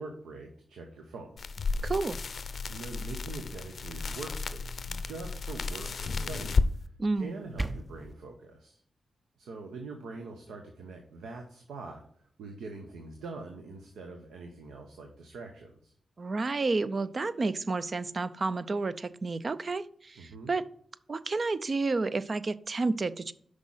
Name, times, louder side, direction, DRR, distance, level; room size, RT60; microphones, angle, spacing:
voice 1, 0.0-1.4 2.7-6.6 7.2-8.8 9.4-12.0 12.4-15.9 20.2-20.5, right 3 dB, 80° right, 4 dB, 0.9 m, -43 dB
sound 1, 1.4-6.7, left 4 dB, 60° left, 0.5 m, -32 dB
voice 2, 1.8-2.2 7.0-7.4 16.2-20.7 21.1-23.3, right 3 dB, 50° right, 15 dB, 0.5 m, -30 dB
sound 2, 7.1-8.1, right 2 dB, 30° right, 0.9 m, -36 dB
6.1 x 4.9 x 5.6 m, 0.62 s
supercardioid pair, 40°, 0 cm